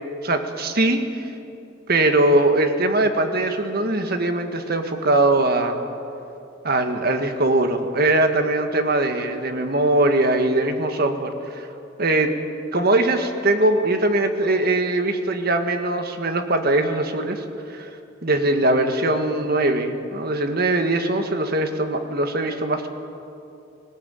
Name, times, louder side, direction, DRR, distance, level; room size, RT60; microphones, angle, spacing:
voice 1, 0.2-1.0 1.9-5.8 6.6-11.7 12.0-12.3 12.7-17.4 17.7-17.9 18.2-22.9, right 2 dB, 55° right, 6 dB, 1.7 m, -21 dB
19.5 x 18.0 x 9.1 m, 2.7 s
head